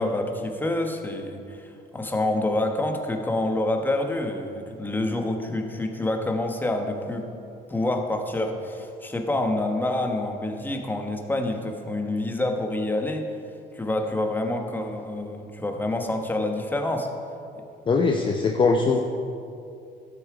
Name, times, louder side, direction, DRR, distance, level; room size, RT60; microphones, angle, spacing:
voice 1, 0.0-7.3 7.7-13.3 13.7-17.1, left 1 dB, 10° left, 3 dB, 1.2 m, -27 dB
voice 2, 17.9-19.0, left 4 dB, 30° left, 3 dB, 0.7 m, -21 dB
12.0 x 8.4 x 4.9 m, 2.5 s
cardioid pair, 110°, 17 cm